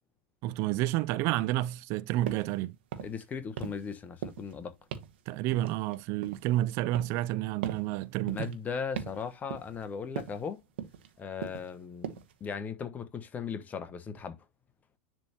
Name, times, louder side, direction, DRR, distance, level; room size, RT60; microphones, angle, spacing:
voice 1, 0.4-2.8 5.3-8.5, right 15 dB, 45° right, 0.5 m, -30 dB
sound 1, 2.3-2.5 2.9-3.2 3.6-3.9 4.2-4.5 4.9-5.2 5.5-6.5 6.9-7.3 7.6-7.9 8.3-8.6 9.0-9.2 9.5-9.9 10.2-10.4 10.8-11.1 11.4-11.7 12.0-12.3, right 9 dB, 65° right, 1.3 m, -39 dB
voice 2, 3.0-4.8 8.3-10.6 11.2-12.1 12.4-14.4, left 6 dB, 25° left, 1.2 m, -37 dB
10.5 x 3.5 x 2.9 m
figure-of-eight pair, 90°, 6 cm